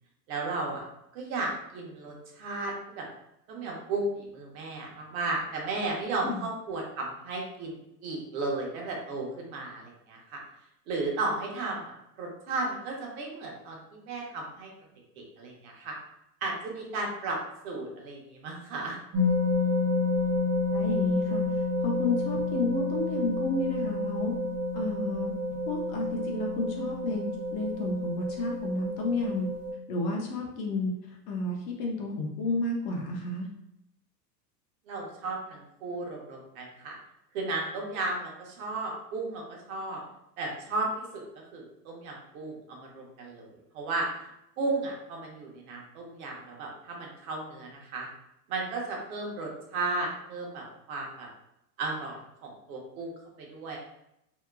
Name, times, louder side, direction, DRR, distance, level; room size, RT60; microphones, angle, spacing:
voice 1, 0.3-0.8 1.1-3.1 3.5-7.8 8.0-10.4 10.9-14.7 15.2-16.0 16.4-17.4 17.6-19.0 34.9-37.0 37.3-40.0 40.4-41.2 41.5-44.1 44.6-48.1 48.5-51.3 51.8-53.8, right 3 dB, 60° right, -1 dB, 0.9 m, -34 dB
sound 1, 19.1-29.7, left 2 dB, 25° right, 0.5 m, -29 dB
voice 2, 20.7-21.4 21.8-24.3 24.7-25.3 25.7-29.5 29.9-30.9 31.3-33.5, left 2 dB, 40° left, 0 dB, 0.5 m, -31 dB
2.8 x 2.1 x 2.3 m, 0.83 s
supercardioid pair, 125°, 48 cm